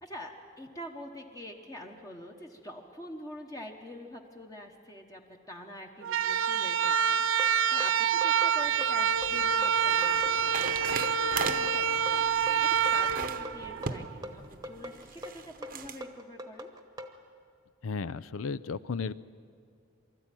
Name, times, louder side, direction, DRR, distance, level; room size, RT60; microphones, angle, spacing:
voice 1, 0.0-5.2 5.5-16.7, left 1 dB, 15° left, 1 dB, 1.1 m, -45 dB
sound 1, 6.0-14.2, right 7 dB, 75° right, 0.4 m, -27 dB
sound 2, 7.4-17.2, equal, 15° right, 1.0 m, -42 dB
sound 3, 8.7-16.0, right 5 dB, 45° right, 0.9 m, -39 dB
voice 2, 17.8-19.1, left 4 dB, 85° left, 15 dB, 0.5 m, -34 dB
24.5 x 13.5 x 9.0 m, 2.3 s
head